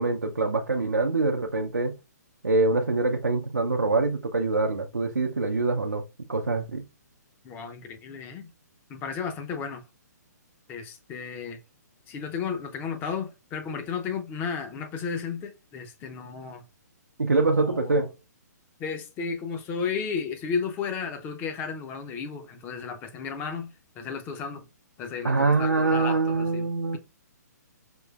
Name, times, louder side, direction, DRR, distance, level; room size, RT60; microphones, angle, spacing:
voice 1, 0.0-2.0 2.4-6.0 6.3-6.8 17.2-18.1 25.2-27.0, right 3 dB, 80° right, 0.6 m, -24 dB
voice 2, 7.4-8.5 8.9-9.8 10.7-11.6 12.1-16.6 17.4-18.0 18.8-24.7 25.0-26.7, left 6 dB, 20° left, 0.6 m, -33 dB
5.3 x 3.1 x 2.3 m
figure-of-eight pair, 125°, 10 cm